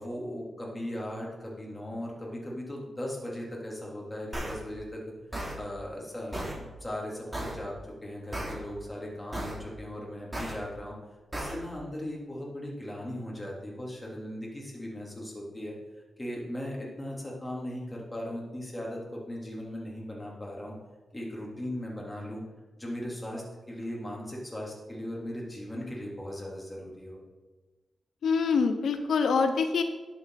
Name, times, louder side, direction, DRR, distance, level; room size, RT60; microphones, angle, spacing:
voice 1, 0.0-5.0 5.5-10.9 11.3-15.7 16.2-20.7 21.1-22.4 22.8-27.2, left 1 dB, 15° left, -3 dB, 3.3 m, -38 dB
sound 1, 4.3-4.5 5.3-5.5 6.3-6.5 7.3-7.5 8.3-8.5 9.3-9.5 10.3-10.5 11.3-11.5, right 1 dB, 15° right, 3.3 m, -34 dB
voice 2, 28.2-29.8, left 5 dB, 85° left, 7 dB, 0.7 m, -25 dB
11.0 x 7.6 x 4.1 m, 1.2 s
cardioid pair, 85°, 0 cm